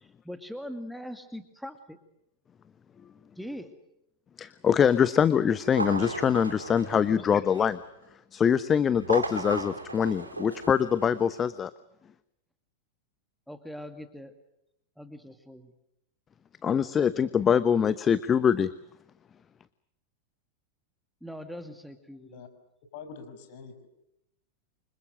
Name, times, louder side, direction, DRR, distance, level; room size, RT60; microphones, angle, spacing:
voice 1, 0.0-2.0 3.4-3.8 6.9-7.4 13.5-14.3 15.0-15.7 21.2-22.4, equal, ahead, 8 dB, 2.3 m, -42 dB
voice 2, 4.4-7.8 8.3-11.7 16.6-18.7, left 7 dB, 25° left, 15 dB, 1.0 m, -24 dB
sound 1, 5.6-7.9 8.9-11.4, right 2 dB, 80° right, 5.1 m, -36 dB
voice 3, 22.1-22.5 22.9-23.9, left 5 dB, 50° left, 8 dB, 6.0 m, -45 dB
29.5 x 26.0 x 6.4 m, 0.83 s
figure-of-eight pair, 90°, 0 cm